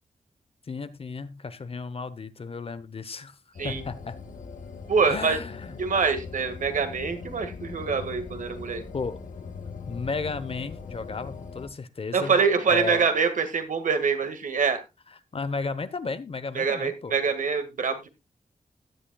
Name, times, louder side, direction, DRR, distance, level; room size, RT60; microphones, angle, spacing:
voice 1, 0.7-3.4 3.6-4.2 5.1-5.8 8.9-9.2 9.9-12.4 12.7-13.0 15.1-17.2, left 4 dB, 45° left, 14 dB, 0.9 m, -34 dB
sound 1, 3.5-11.7, left 5 dB, 80° left, 2.0 m, -40 dB
voice 2, 4.9-5.4 5.8-8.8 12.1-14.8 16.6-18.1, right 5 dB, 75° right, 8 dB, 1.8 m, -25 dB
15.5 x 10.5 x 2.3 m, 0.23 s
wide cardioid pair, 125°, 13 cm